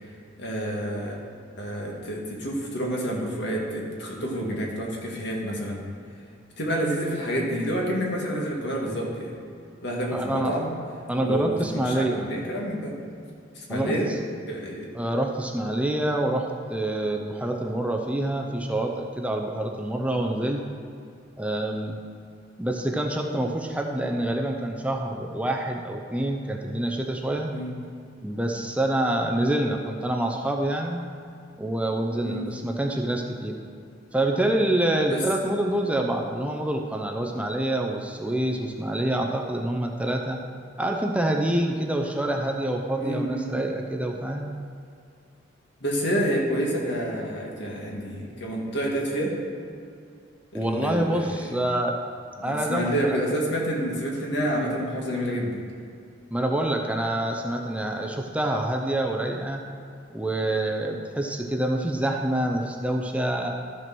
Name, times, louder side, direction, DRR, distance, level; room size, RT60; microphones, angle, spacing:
voice 1, 0.4-1.2 1.6-5.8 6.6-9.3 9.8-10.7 11.2-13.0 13.5-14.1 14.5-14.9 27.5-27.8 32.2-32.5 35.1-35.2 42.9-43.5 45.8-49.3 50.5-51.4 52.4-55.5, equal, 65° left, -2 dB, 2.0 m, -28 dB
voice 2, 10.1-10.6 11.1-12.2 13.7-14.1 14.9-20.6 21.4-22.0 22.6-27.5 28.2-31.0 31.6-33.6 34.1-40.4 40.8-44.5 50.5-52.0 52.4-53.2 56.3-59.6 60.1-63.5, right 1 dB, 5° right, 2 dB, 0.6 m, -26 dB
13.5 x 4.6 x 6.1 m, 2.4 s
head